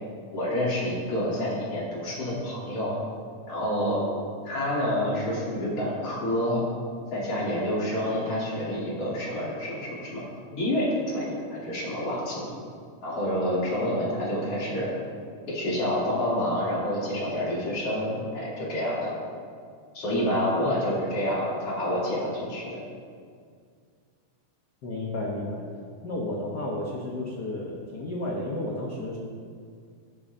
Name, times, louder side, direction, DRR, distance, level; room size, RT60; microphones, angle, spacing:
voice 1, 0.3-3.0 3.5-4.0 4.4-6.6 7.1-10.2 10.6-12.5 13.0-14.9 15.5-19.1 19.9-22.8, left 1 dB, 45° left, -7 dB, 4.1 m, -28 dB
voice 2, 24.8-25.6 26.0-29.2, left 1 dB, 85° left, -3 dB, 0.9 m, -32 dB
18.5 x 8.8 x 2.8 m, 2.1 s
omnidirectional pair, 3.7 m